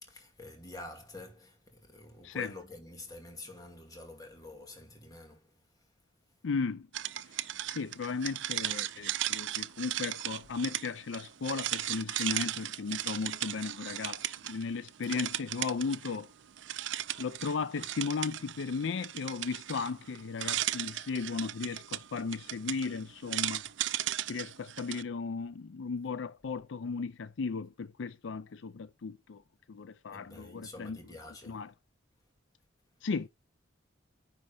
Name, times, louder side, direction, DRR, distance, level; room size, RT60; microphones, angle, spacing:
voice 1, 0.0-5.5 30.1-31.7, left 2 dB, 20° left, 2.2 m, -48 dB
voice 2, 6.4-6.9 7.4-16.3 17.2-23.6 24.3-29.4 29.7-31.0 31.4-31.7 33.0-33.3, left 4 dB, 70° left, 0.5 m, -36 dB
sound 1, 6.9-14.6 14.9-16.2 16.6-25.0, right 13 dB, 70° right, 0.5 m, -36 dB
9.8 x 4.0 x 5.0 m
head